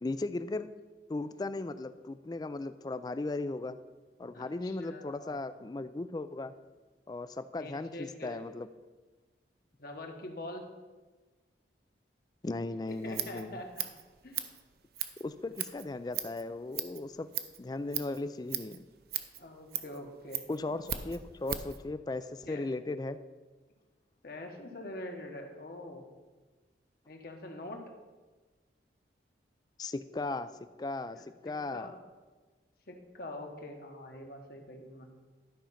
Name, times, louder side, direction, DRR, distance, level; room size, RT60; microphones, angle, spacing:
voice 1, 0.0-0.7 1.1-3.8 4.2-6.5 7.1-8.7 12.4-13.6 15.2-17.3 17.6-18.8 20.5-23.2 29.8-30.5 30.8-31.9, left 2 dB, 20° left, 12 dB, 0.3 m, -37 dB
voice 2, 4.3-5.4 7.6-8.4 9.8-10.6 12.9-13.9 14.2-14.5 19.4-20.5 22.4-22.7 24.2-26.0 27.1-27.8 31.1-31.2 31.7-32.0 32.9-35.1, left 1 dB, 55° left, 3 dB, 1.3 m, -44 dB
Scissors, 12.9-21.8, right 11 dB, 55° right, 0.6 m, -39 dB
12.0 x 5.1 x 5.7 m, 1.3 s
head